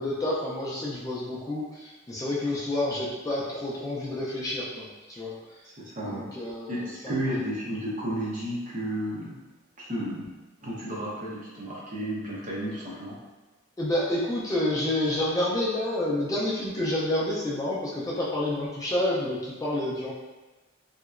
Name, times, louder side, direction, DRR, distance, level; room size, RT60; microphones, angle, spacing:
voice 1, 0.0-5.4 6.0-7.2 13.8-20.1, left 1 dB, 15° left, -6 dB, 0.4 m, -29 dB
voice 2, 5.6-6.2 6.7-9.3 9.8-10.2 10.6-13.2, right 1 dB, 40° right, -6 dB, 0.8 m, -32 dB
3.2 x 2.9 x 2.4 m, 1.2 s
head